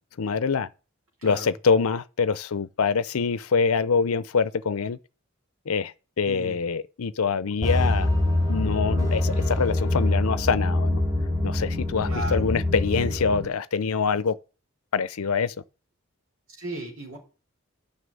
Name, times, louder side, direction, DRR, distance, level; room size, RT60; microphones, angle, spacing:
voice 1, 0.2-0.7 1.2-5.0 5.7-5.9 6.2-8.1 8.5-11.0 11.4-14.4 14.9-15.5, left 5 dB, 90° left, 0.6 m, -25 dB
voice 2, 1.2-1.5 6.2-6.6 12.0-12.5 16.5-17.2, right 2 dB, 80° right, 4.0 m, -35 dB
sound 1, 7.6-13.4, left 1 dB, 15° right, 4.1 m, -24 dB
9.6 x 5.9 x 8.3 m
head